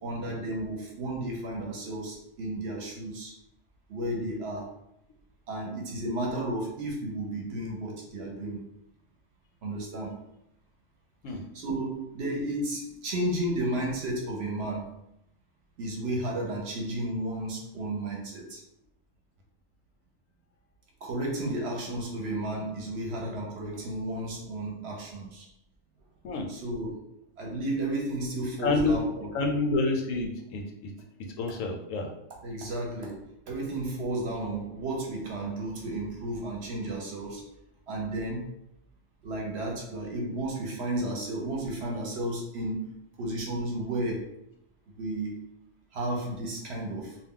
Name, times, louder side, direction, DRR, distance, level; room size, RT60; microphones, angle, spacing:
voice 1, 0.0-3.3 3.9-4.7 5.5-8.6 9.6-10.2 11.5-14.9 15.8-18.6 21.0-25.5 26.5-27.0 27.4-29.3 32.4-37.5 37.9-38.5 39.2-42.9 43.2-44.3 45.0-45.5 45.9-47.2, right 1 dB, 60° right, -1 dB, 0.8 m, -33 dB
voice 2, 28.6-29.0 29.3-30.9 31.4-32.1, left 3 dB, 80° left, 2 dB, 0.9 m, -28 dB
2.3 x 2.1 x 3.6 m, 0.79 s
omnidirectional pair, 1.3 m